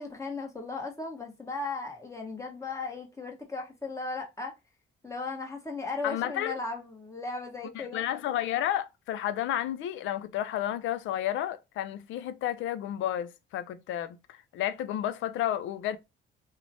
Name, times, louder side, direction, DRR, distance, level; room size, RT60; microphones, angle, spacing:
voice 1, 0.0-4.5 5.0-8.0, left 3 dB, 15° left, 1.0 m, -36 dB
voice 2, 6.0-6.6 7.7-16.0, left 12 dB, 75° left, 0.4 m, -31 dB
3.0 x 2.1 x 2.6 m
cardioid pair, 90°, 20 cm